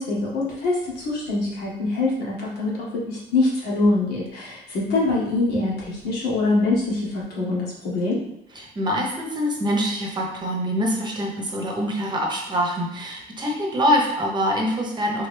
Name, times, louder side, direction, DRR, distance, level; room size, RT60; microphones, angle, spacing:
voice 1, 0.0-8.2, left 2 dB, 70° left, -5 dB, 1.6 m, -24 dB
voice 2, 8.5-15.3, equal, 25° right, 0 dB, 1.0 m, -24 dB
3.7 x 3.2 x 3.3 m, 0.81 s
cardioid pair, 110°, 17 cm